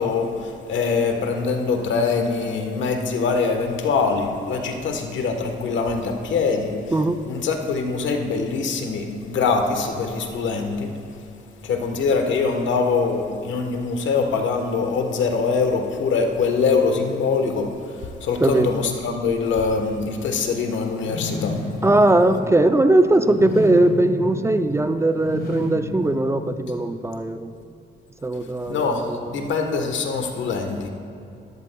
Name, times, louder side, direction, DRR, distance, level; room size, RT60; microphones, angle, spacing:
voice 1, 0.0-6.7 7.3-10.9 11.6-21.6 28.7-30.9, left 4 dB, 70° left, 4 dB, 1.2 m, -23 dB
sound 1, 21.0-27.0, left 2 dB, 50° left, 1.6 m, -31 dB
voice 2, 21.8-27.5 28.2-29.4, right 2 dB, 15° right, 9 dB, 0.4 m, -19 dB
14.0 x 12.0 x 2.3 m, 2.7 s
cardioid pair, 90°, 20 cm